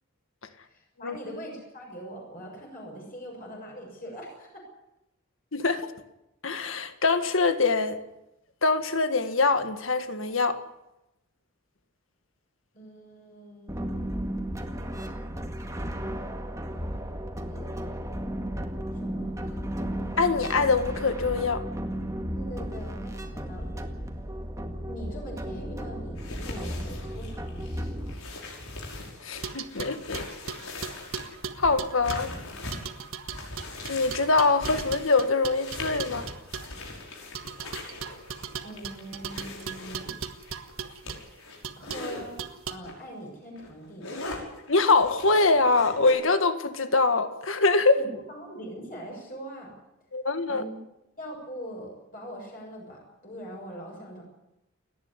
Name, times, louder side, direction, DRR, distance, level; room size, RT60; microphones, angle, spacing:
voice 1, 0.6-4.6 12.7-14.0 17.5-17.7 18.9-19.6 22.4-23.9 24.9-27.7 38.6-40.1 41.8-42.4 42.7-44.3 48.0-49.7 50.5-50.8 51.2-54.2, equal, 40° left, -1 dB, 7.1 m, -42 dB
voice 2, 5.5-5.9 6.4-8.0 8.6-10.6 20.2-21.6 29.2-30.3 31.6-32.3 33.9-36.3 44.7-48.0 50.1-50.6, left 3 dB, 70° left, 9 dB, 1.8 m, -24 dB
sound 1, 13.7-28.1, equal, 15° right, 1.9 m, -34 dB
sound 2, 26.2-42.2 42.8-43.0 43.4-46.1, left 2 dB, 85° left, 5.9 m, -41 dB
sound 3, 29.4-32.3 32.7-36.8 37.3-41.2 41.6-42.1 42.4-42.8, right 6 dB, 80° right, 1.5 m, -38 dB
29.5 x 11.0 x 9.9 m, 0.91 s
head